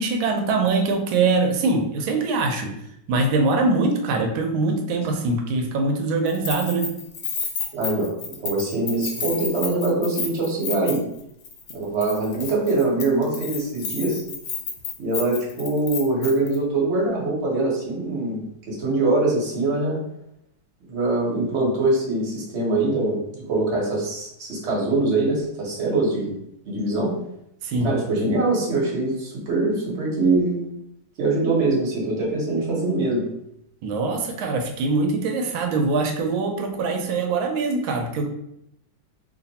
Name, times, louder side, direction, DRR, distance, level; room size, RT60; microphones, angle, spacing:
voice 1, 0.0-2.7 3.1-6.9 27.6-27.9 33.8-38.3, right 3 dB, 90° right, 3 dB, 1.4 m, -23 dB
Keys jangling, 6.3-11.2 11.4-11.7 12.0-16.6, left 5 dB, 65° left, 0.8 m, -31 dB
voice 2, 7.7-11.0 11.7-14.2 15.0-18.4 18.7-20.0 20.9-26.3 26.6-27.1 27.8-30.6 31.2-33.2, right 2 dB, 40° right, -4 dB, 1.4 m, -23 dB
3.2 x 2.6 x 4.0 m, 0.78 s
omnidirectional pair, 2.1 m